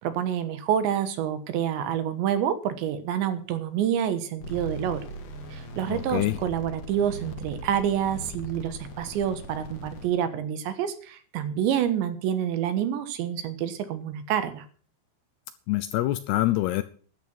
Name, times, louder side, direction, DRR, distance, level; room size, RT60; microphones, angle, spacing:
voice 1, 0.0-5.0 5.5-14.7, right 9 dB, 75° right, 11 dB, 3.5 m, -28 dB
sound 1, 4.4-10.1, equal, 50° left, 2.2 m, -39 dB
voice 2, 5.9-6.3 15.7-16.8, left 16 dB, 80° left, 14 dB, 2.4 m, -25 dB
13.0 x 11.0 x 6.2 m, 0.43 s
omnidirectional pair, 5.5 m